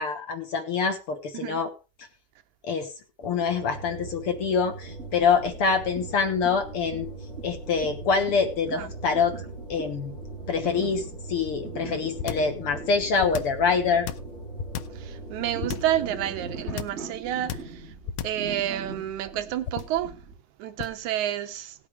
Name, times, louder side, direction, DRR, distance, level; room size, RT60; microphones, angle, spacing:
voice 1, 0.0-1.7 2.6-2.9 3.2-7.1 7.4-10.1 10.5-14.1, left 5 dB, 55° left, 1.8 m, -25 dB
sound 1, 3.2-16.9, right 2 dB, ahead, 6.8 m, -41 dB
sound 2, 4.8-20.3, right 3 dB, 20° right, 6.5 m, -42 dB
sound 3, 12.2-12.6 13.2-13.6 14.1-15.0 15.6-16.0 16.7-17.1 17.5-17.8 18.1-18.5 19.6-20.0 20.8-21.1, left 9 dB, 85° left, 2.3 m, -33 dB
voice 2, 15.0-17.8 18.2-20.1 20.6-21.8, right 12 dB, 80° right, 2.2 m, -29 dB
18.0 x 8.5 x 3.4 m
omnidirectional pair, 3.5 m